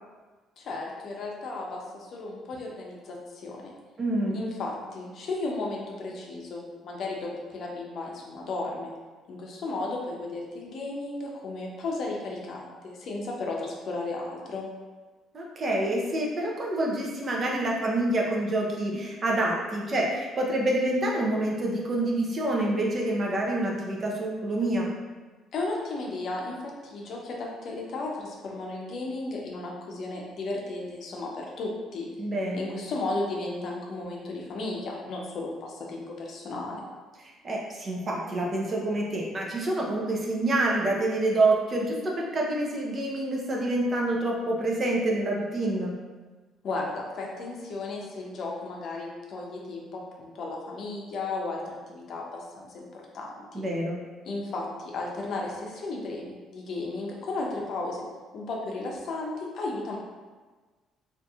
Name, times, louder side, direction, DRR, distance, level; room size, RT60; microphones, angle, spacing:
voice 1, 0.6-3.7 4.3-8.9 9.3-14.7 25.5-32.1 32.5-36.8 46.6-53.6 54.2-58.0 58.3-60.0, left 2 dB, 60° left, -1 dB, 0.5 m, -34 dB
voice 2, 4.0-4.4 15.3-24.9 32.2-32.7 37.2-46.0 53.5-54.0, right 1 dB, 40° right, -2 dB, 0.6 m, -27 dB
2.7 x 2.5 x 2.3 m, 1.3 s
supercardioid pair, 80°, 0 cm